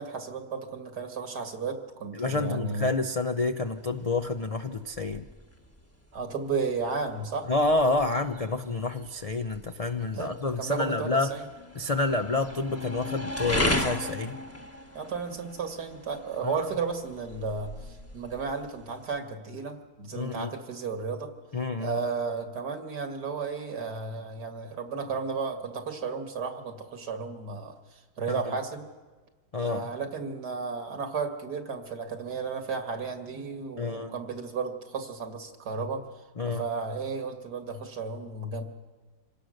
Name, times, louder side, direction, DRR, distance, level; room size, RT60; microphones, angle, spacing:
voice 1, 0.0-2.9 6.1-7.5 10.1-11.5 14.9-21.3 21.8-28.9 29.6-36.0 36.4-38.6, right 4 dB, 85° right, 5 dB, 2.4 m, -33 dB
voice 2, 2.1-5.2 7.5-11.3 11.8-14.4 16.4-16.6 20.1-20.5 21.5-22.0 28.3-28.6 29.5-29.9 33.8-34.1 36.4-36.6, left 3 dB, 55° left, 7 dB, 0.4 m, -28 dB
sound 1, 3.7-19.2, left 1 dB, 10° left, 1.1 m, -37 dB
26.5 x 17.5 x 6.5 m, 1.3 s
omnidirectional pair, 1.7 m